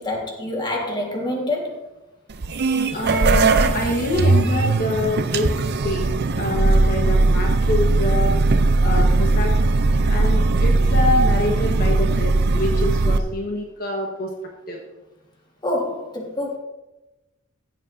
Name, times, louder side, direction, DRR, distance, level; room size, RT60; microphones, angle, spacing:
voice 1, 0.0-1.8 2.8-3.0 15.6-16.6, left 1 dB, 20° left, 0 dB, 1.7 m, -26 dB
sound 1, 2.3-13.2, right 3 dB, 50° right, 0.6 m, -19 dB
voice 2, 2.9-5.5 5.8-6.1 6.4-8.4 8.8-9.5 10.1-14.3 14.7-14.8, left 1 dB, 45° left, 0 dB, 1.3 m, -25 dB
16.0 x 7.5 x 2.7 m, 0.99 s
head